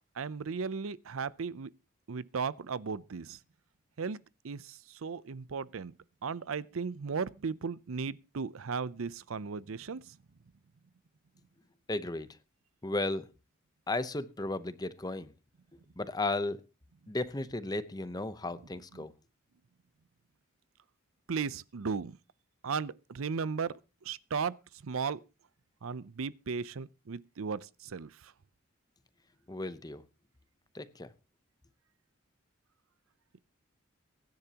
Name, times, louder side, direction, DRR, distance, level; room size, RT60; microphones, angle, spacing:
voice 1, 0.1-1.7 2.1-3.4 4.0-4.2 4.4-5.9 6.2-10.2 21.3-22.2 22.6-23.7 24.0-24.5 24.8-25.2 25.8-28.3, right 5 dB, 85° right, 0.6 m, -36 dB
voice 2, 11.9-12.4 12.8-13.3 13.9-15.3 16.0-16.6 17.1-19.1 29.5-30.0 30.7-31.1, left 2 dB, 20° left, 0.8 m, -34 dB
23.0 x 10.5 x 2.9 m
head